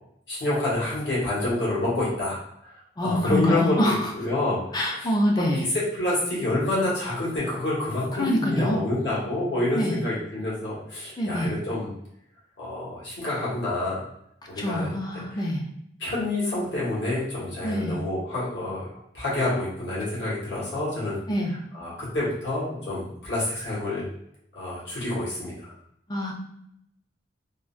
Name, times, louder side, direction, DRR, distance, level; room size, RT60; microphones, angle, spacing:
voice 1, 0.3-2.7 3.0-5.1 5.4-11.9 12.6-14.0 14.5-15.4 16.0-18.9 19.1-21.2 21.7-24.0 24.5-25.7, left 2 dB, 80° left, -8 dB, 1.3 m, -28 dB
voice 2, 3.0-4.0 4.7-5.6 8.2-8.8 9.7-10.0 11.2-11.5 14.6-15.6 17.6-18.0 21.3-21.5 26.1-26.3, equal, 20° left, 0 dB, 0.4 m, -25 dB
3.7 x 2.0 x 2.4 m, 0.73 s
head